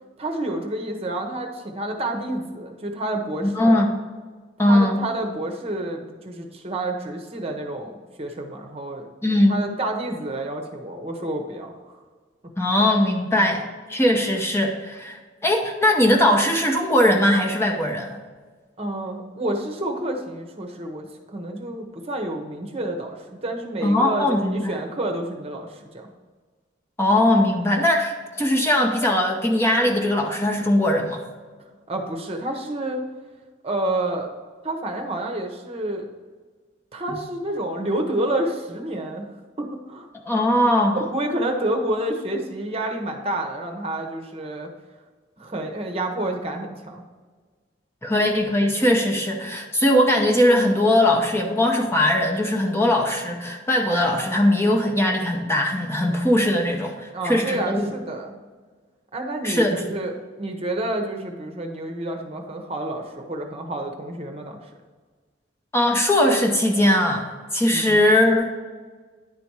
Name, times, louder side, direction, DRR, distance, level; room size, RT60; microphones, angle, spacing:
voice 1, 0.2-3.8 4.6-9.0 9.5-12.0 18.8-26.1 31.9-33.0 33.6-34.3 34.6-36.1 36.9-40.1 40.9-44.7 45.4-47.0 57.1-58.3 59.1-60.1 60.4-64.6 67.7-68.0, right 1 dB, 35° right, 3 dB, 0.9 m, -29 dB
voice 2, 3.6-3.9 4.6-5.0 9.2-9.6 12.6-18.2 23.8-24.8 27.0-31.2 40.2-41.0 48.0-57.9 59.4-59.8 65.7-67.3 67.5-68.6, left 1 dB, 15° left, 1 dB, 0.8 m, -20 dB
10.0 x 4.2 x 4.7 m, 1.5 s
head